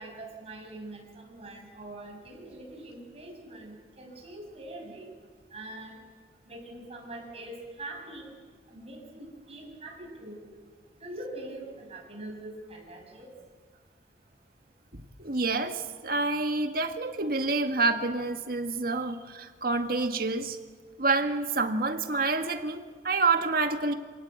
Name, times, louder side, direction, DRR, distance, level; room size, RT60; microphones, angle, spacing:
voice 1, 0.0-5.1 5.5-6.0 6.5-8.3 8.7-10.5 11.0-13.3, right 1 dB, 35° right, 0 dB, 7.1 m, -43 dB
voice 2, 14.9-20.6 21.0-23.9, right 3 dB, 55° right, 6 dB, 1.8 m, -28 dB
27.0 x 18.5 x 8.4 m, 1.5 s
head